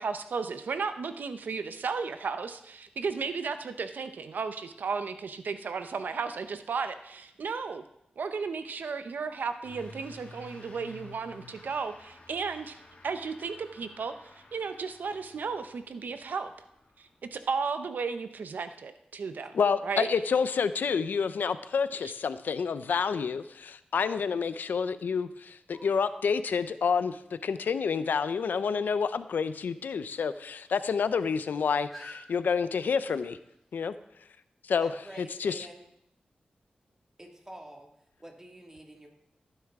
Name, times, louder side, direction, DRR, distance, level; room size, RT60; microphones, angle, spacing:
voice 1, 0.0-7.8 8.2-12.8 13.0-14.1 14.5-16.5 17.0-19.5 19.8-20.1 22.0-22.1, right 5 dB, 75° right, 9 dB, 0.7 m, -34 dB
Truck / Accelerating revving vroom, 9.6-17.6, left 2 dB, 65° left, 2.6 m, -53 dB
voice 2, 19.5-33.4 33.7-33.9 34.7-34.9 35.2-35.6, left 6 dB, 90° left, 13 dB, 0.6 m, -29 dB
sound 1, 25.7-33.7, equal, ahead, 4.2 m, -55 dB
voice 3, 34.8-35.9 37.2-37.9 38.2-39.1, right 1 dB, 15° right, 1 dB, 2.0 m, -47 dB
16.5 x 9.8 x 3.6 m, 0.79 s
wide cardioid pair, 120°, 3 cm